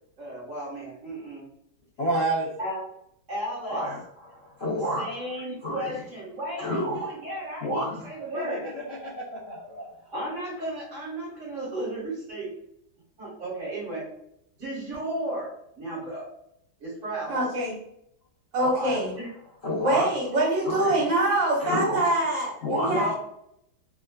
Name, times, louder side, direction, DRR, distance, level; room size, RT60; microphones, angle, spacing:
voice 1, 0.2-1.5 2.6-2.8 3.3-3.9 5.0-8.7 10.1-12.5 13.2-14.1 14.6-16.3 16.8-17.4 19.2-19.3 21.2-21.3 22.8-23.1, right 1 dB, 40° right, -6 dB, 1.7 m, -34 dB
voice 2, 2.0-2.5 3.7-4.0 4.3-5.1 5.6-5.9 6.6-7.1 7.6-8.1 8.3-10.1 18.6-19.0 19.6-20.1 20.6-21.0 21.6-22.1 22.6-23.1, equal, 65° left, -5 dB, 0.6 m, -30 dB
voice 3, 17.3-17.7 18.5-19.1 19.8-23.1, right 1 dB, 70° right, -4 dB, 1.6 m, -24 dB
3.6 x 2.3 x 2.3 m, 0.73 s
omnidirectional pair, 2.1 m